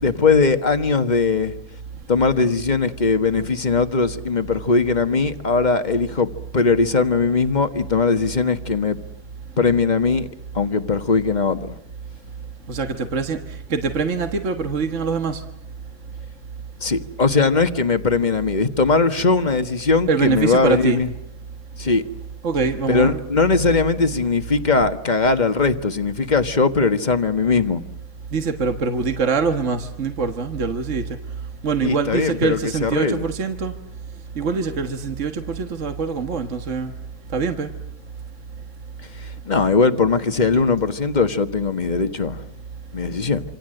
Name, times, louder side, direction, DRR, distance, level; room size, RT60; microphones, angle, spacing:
voice 1, 0.0-1.5 2.1-9.0 9.6-10.3 10.5-11.7 16.8-21.1 21.8-22.0 22.9-27.8 31.8-33.3 39.2-42.4 42.9-43.4, left 4 dB, 30° left, 1.6 m, -20 dB
voice 2, 12.7-13.4 13.7-15.4 20.1-21.0 22.4-23.2 28.3-31.0 31.6-33.7 34.4-36.9 37.3-37.7, right 5 dB, 55° right, 1.9 m, -23 dB
27.0 x 27.0 x 7.8 m
omnidirectional pair, 1.5 m